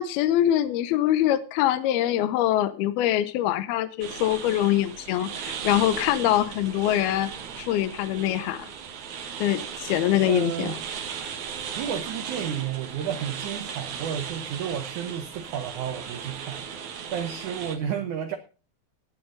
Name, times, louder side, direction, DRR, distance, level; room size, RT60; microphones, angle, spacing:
voice 1, 0.0-7.3 7.6-8.7 9.4-10.8, left 12 dB, 75° left, 2.6 m, -24 dB
sound 1, 4.0-17.8, right 7 dB, 55° right, 2.4 m, -37 dB
voice 2, 10.3-10.8 11.7-16.6 17.1-18.4, right 8 dB, 75° right, 1.8 m, -32 dB
18.5 x 7.0 x 5.2 m
omnidirectional pair, 4.9 m